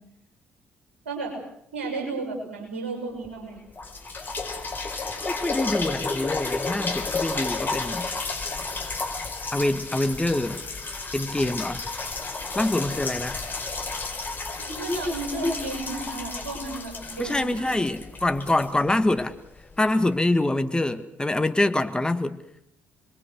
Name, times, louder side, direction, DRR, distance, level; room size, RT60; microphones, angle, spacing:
voice 1, 1.7-3.6 14.6-17.8, right 2 dB, 80° right, 2 dB, 6.8 m, -32 dB
sound 1, 3.3-3.4 3.8-19.5 20.1-20.2, left 3 dB, 30° left, 5.1 m, -32 dB
voice 2, 5.3-8.1 9.5-10.6 11.1-11.9 12.5-13.4 17.2-19.3 19.8-22.4, left 2 dB, 15° left, 10 dB, 1.7 m, -25 dB
28.0 x 22.5 x 6.6 m, 0.72 s
figure-of-eight pair, 45°, 6 cm